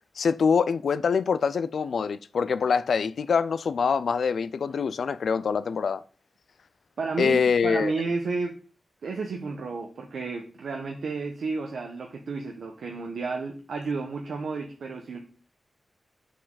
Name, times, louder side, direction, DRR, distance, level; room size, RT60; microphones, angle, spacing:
voice 1, 0.2-6.0 7.2-7.9, left 6 dB, 85° left, 0.4 m, -24 dB
voice 2, 7.0-8.6 9.0-15.2, right 4 dB, 85° right, 1.1 m, -32 dB
7.5 x 6.6 x 4.0 m
cardioid pair, 70°, 0 cm